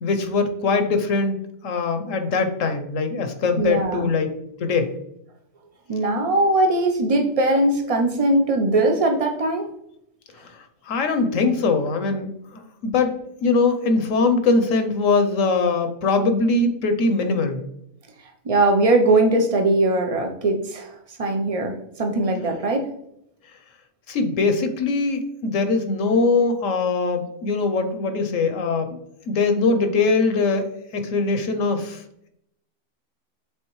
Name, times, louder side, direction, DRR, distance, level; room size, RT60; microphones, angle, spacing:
voice 1, 0.0-1.4 1.6-4.3 4.6-4.9 10.4-13.1 13.4-17.6 24.1-29.0 29.3-32.0, left 3 dB, 65° left, 7 dB, 1.0 m, -22 dB
voice 2, 3.6-4.1 5.9-9.7 18.4-20.9 21.2-22.9, right 2 dB, 40° right, 4 dB, 0.5 m, -20 dB
7.8 x 3.9 x 3.1 m, 0.77 s
omnidirectional pair, 1.5 m